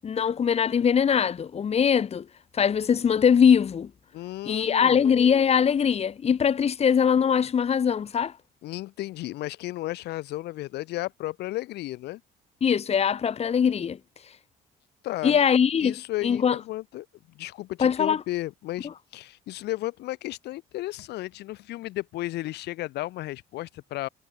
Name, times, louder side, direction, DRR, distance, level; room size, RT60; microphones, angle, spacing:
voice 1, 0.0-2.3 2.5-3.9 4.5-8.3 12.6-14.0 15.2-16.0 16.2-16.6 17.8-18.2, left 7 dB, 40° left, 2.0 m, -22 dB
voice 2, 4.1-5.1 8.6-12.2 15.0-15.4 15.8-17.1 17.3-24.1, left 16 dB, 80° left, 3.3 m, -34 dB
cardioid pair, 110°, 17 cm